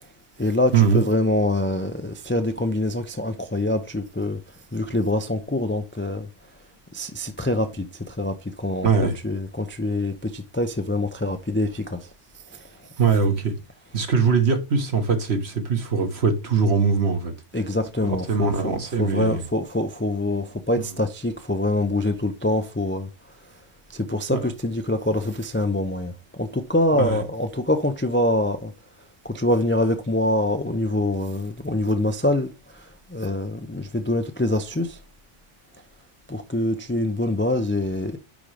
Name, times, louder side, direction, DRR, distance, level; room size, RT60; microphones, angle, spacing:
voice 1, 0.4-4.4 4.7-6.3 6.9-12.1 12.5-12.6 17.5-23.1 23.9-28.7 29.2-32.5 33.1-35.0 36.3-38.2, left 1 dB, 20° left, 0.3 m, -25 dB
voice 2, 8.8-9.1 13.0-13.5 13.9-17.3 18.0-19.4 20.7-20.8 24.3-24.4 27.0-27.2, right 5 dB, 60° right, 1.4 m, -21 dB
10.0 x 3.8 x 3.3 m
omnidirectional pair, 1.3 m